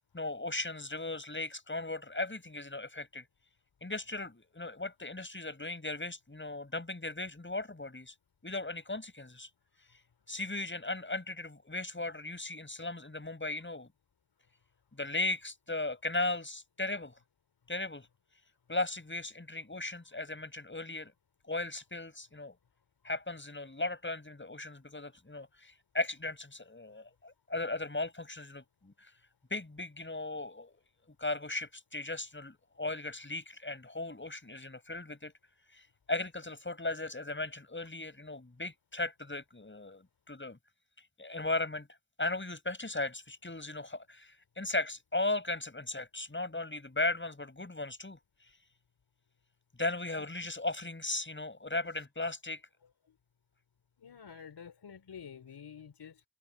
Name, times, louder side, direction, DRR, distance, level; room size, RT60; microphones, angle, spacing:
voice 1, 0.1-3.3 3.8-8.1 8.4-9.5 10.3-13.9 14.9-17.2 17.7-18.1 18.7-21.1 21.5-22.6 23.0-29.1 29.5-30.8 31.2-35.3 35.7-40.6 41.2-41.9 42.2-48.2 49.8-52.6, left 2 dB, 25° left, 7.5 m, -37 dB
voice 2, 54.0-56.2, left 7 dB, 70° left, 4.7 m, -49 dB
supercardioid pair, 40°, 42 cm